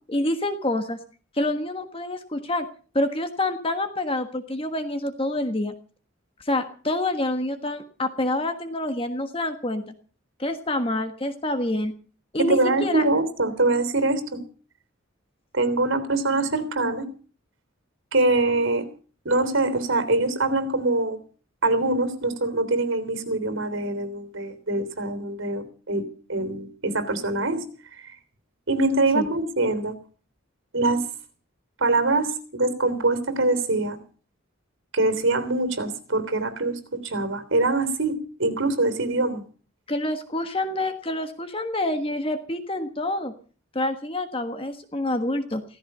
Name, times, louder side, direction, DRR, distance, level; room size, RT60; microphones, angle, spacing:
voice 1, 0.1-1.0 1.3-2.6 2.9-5.8 6.4-9.8 10.4-11.9 12.3-13.0 29.1-29.3 39.9-43.3 43.7-45.6, left 1 dB, 25° left, 8 dB, 1.5 m, -27 dB
voice 2, 12.5-14.4 15.5-17.0 18.1-18.8 19.2-21.2 21.6-27.7 28.0-28.1 28.7-29.9 30.7-31.0 31.8-34.0 34.9-39.4, right 2 dB, 70° right, 11 dB, 3.4 m, -24 dB
16.5 x 15.0 x 5.6 m, 0.40 s
head